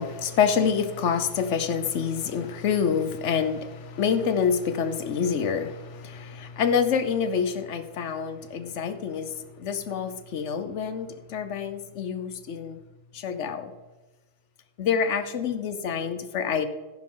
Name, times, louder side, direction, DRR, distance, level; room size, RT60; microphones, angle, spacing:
voice 1, 0.0-12.8 13.1-13.7 14.8-16.7, left 6 dB, 75° left, 10 dB, 1.1 m, -27 dB
10.5 x 9.2 x 3.8 m, 1.2 s
omnidirectional pair, 1.3 m